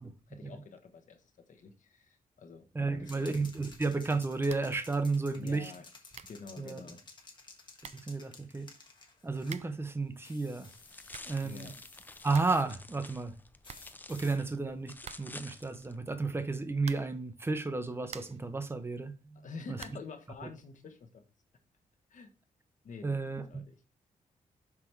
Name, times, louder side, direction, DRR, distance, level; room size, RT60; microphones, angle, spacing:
voice 1, 0.3-3.3 5.4-7.0 11.4-11.7 19.3-21.2 22.1-22.3 22.8-23.8, left 4 dB, 65° left, 1.2 m, -48 dB
voice 2, 2.7-5.7 6.6-6.8 8.0-8.7 9.2-10.7 11.3-11.7 12.2-13.4 14.1-19.8 23.0-23.6, right 3 dB, 15° right, 0.9 m, -33 dB
sound 1, 3.0-9.7 10.2-12.8 13.6-14.4, left 3 dB, 30° left, 1.4 m, -54 dB
sound 2, 4.5-4.8 5.1-5.2 5.8-5.9 6.1-6.5 7.4-7.5 7.8-8.2 9.4-9.9 10.8-11.4 11.8-11.9 12.1-12.7 12.9-13.0 13.3-13.4 13.6-14.4 15.0-15.5 16.8-17.3 17.8-18.5 19.8-20.2, right 8 dB, 50° right, 0.4 m, -49 dB
sound 3, 10.7-15.9, left 2 dB, 15° left, 0.5 m, -50 dB
6.0 x 4.7 x 4.6 m
wide cardioid pair, 125°, 14 cm